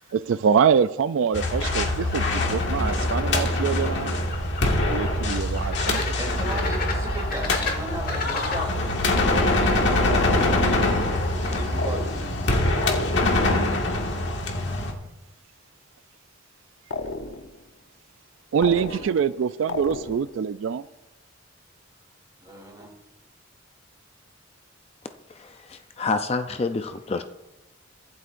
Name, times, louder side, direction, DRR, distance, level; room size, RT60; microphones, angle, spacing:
voice 1, 0.1-2.2 2.5-4.2 4.8-6.0 18.5-20.8, right 7 dB, 80° right, 0.3 m, -24 dB
sound 1, 1.3-14.9, left 2 dB, 65° left, 1.8 m, -24 dB
sound 2, 1.4-11.7, left 3 dB, 45° left, 1.7 m, -35 dB
voice 2, 6.2-9.8 10.3-12.7 22.4-22.9, right 1 dB, 20° right, 3.1 m, -37 dB
sound 3, 10.1-10.8 11.8-12.5 12.8-13.6 16.9-17.6 18.6-19.4 19.7-20.4, left 2 dB, 80° left, 0.8 m, -33 dB
voice 3, 25.3-27.2, left 3 dB, 30° left, 0.4 m, -28 dB
23.0 x 8.1 x 2.5 m
head